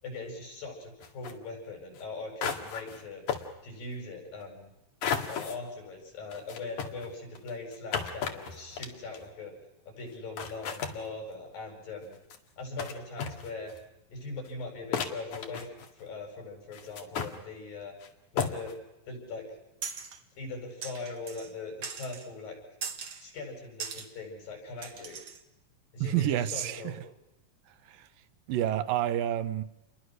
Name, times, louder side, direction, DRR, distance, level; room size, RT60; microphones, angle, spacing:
voice 1, 0.0-3.2 3.6-4.7 5.3-9.5 9.9-12.2 12.6-13.7 14.1-15.7 15.9-17.9 18.3-18.7 19.1-19.5 20.4-22.6 23.2-25.2 25.9-27.0, left 3 dB, 80° left, 2 dB, 9.7 m, -41 dB
sound 1, 1.0-1.3 1.9-2.0 2.4-3.0 3.3-3.5 5.0-5.6 6.3-9.3 10.1-10.2 10.4-11.0 12.0-12.4 12.8-12.9 13.2-13.8 14.4-14.5 14.9-16.0 16.7-17.3 18.0-18.1 18.4-18.7, left 7 dB, 65° left, 3.3 m, -34 dB
sound 2, 19.8-20.2 20.8-21.5 21.8-22.3 22.8-23.2 23.8-24.1 24.8-25.4, right 6 dB, 45° right, 2.3 m, -39 dB
voice 2, 26.0-27.0 27.9-28.1 28.5-29.6, right 11 dB, 80° right, 12 dB, 2.7 m, -29 dB
29.5 x 23.0 x 6.4 m, 0.92 s
omnidirectional pair, 3.9 m